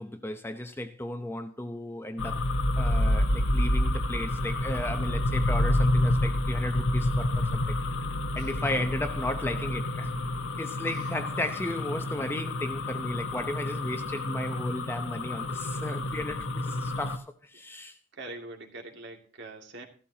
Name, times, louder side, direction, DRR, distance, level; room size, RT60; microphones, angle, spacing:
voice 1, 0.0-2.4 2.8-7.8 8.3-10.1 10.6-18.0, left 1 dB, 10° left, 0.8 m, -35 dB
sound 1, 2.2-17.2, left 1 dB, 75° left, 1.2 m, -28 dB
voice 2, 18.1-19.9, right 2 dB, 60° right, 2.4 m, -44 dB
15.5 x 12.5 x 2.9 m
head